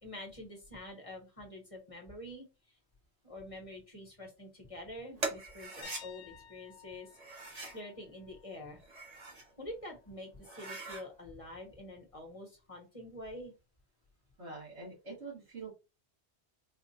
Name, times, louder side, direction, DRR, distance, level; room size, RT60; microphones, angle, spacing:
voice 1, 0.0-2.8 3.2-8.8 9.6-13.5, left 1 dB, 30° left, 1 dB, 1.2 m, -47 dB
sound 1, 5.2-6.0 7.1-7.8 8.7-9.5 9.9-10.0 10.4-11.0, right 2 dB, 40° right, 1.0 m, -41 dB
sound 2, 5.8-9.6 9.9-10.2 13.1-13.2, left 9 dB, 65° left, 0.8 m, -56 dB
voice 2, 14.4-15.7, right 3 dB, 75° right, -2 dB, 2.3 m, -45 dB
4.4 x 2.4 x 2.8 m, 0.28 s
omnidirectional pair, 1.2 m